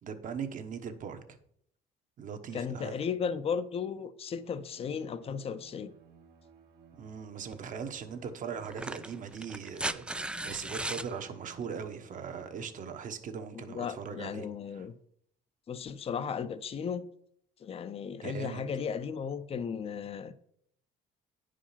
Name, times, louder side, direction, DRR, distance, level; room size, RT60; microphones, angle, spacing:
voice 1, 0.0-1.2 2.2-3.0 7.0-14.5 14.7-14.8 18.2-18.6, right 6 dB, 50° right, 1.1 m, -40 dB
voice 2, 2.5-5.9 13.5-14.9 15.7-17.1 17.6-20.4, left 6 dB, 35° left, 0.6 m, -35 dB
Bowed string instrument, 4.3-12.8, right 7 dB, 70° right, 1.4 m, -59 dB
sound 1, 7.5-7.6 8.6-11.1 12.6-12.7, right 2 dB, 5° right, 0.3 m, -36 dB
9.6 x 5.0 x 5.7 m
cardioid pair, 110°, 17 cm